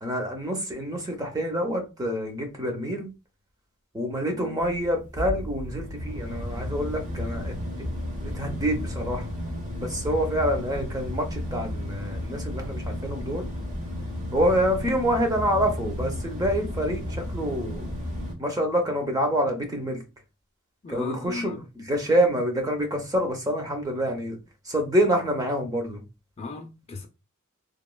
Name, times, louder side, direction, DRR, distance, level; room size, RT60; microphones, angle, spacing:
voice 1, 0.0-3.1 3.9-7.5 8.2-9.3 9.8-13.5 14.3-17.9 18.4-20.0 20.9-24.4 24.6-26.0, equal, 15° right, 0.6 m, -27 dB
sound 1, 4.6-18.3, left 1 dB, 40° right, 0.9 m, -33 dB
voice 2, 20.8-21.6 26.4-27.1, left 3 dB, 30° left, 0.4 m, -36 dB
2.9 x 2.2 x 2.2 m
head